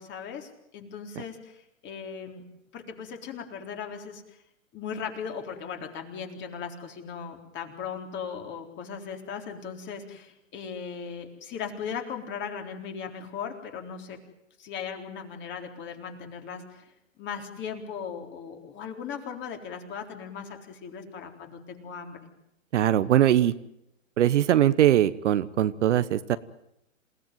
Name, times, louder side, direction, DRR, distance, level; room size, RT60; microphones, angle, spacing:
voice 1, 0.0-2.4 2.7-4.4 4.7-14.2 14.6-22.2, left 6 dB, 30° left, 4 dB, 4.0 m, -38 dB
voice 2, 22.7-23.5 24.2-26.4, right 11 dB, 60° right, 14 dB, 1.2 m, -21 dB
28.0 x 17.5 x 9.3 m, 0.81 s
hypercardioid pair, 120°, 40 cm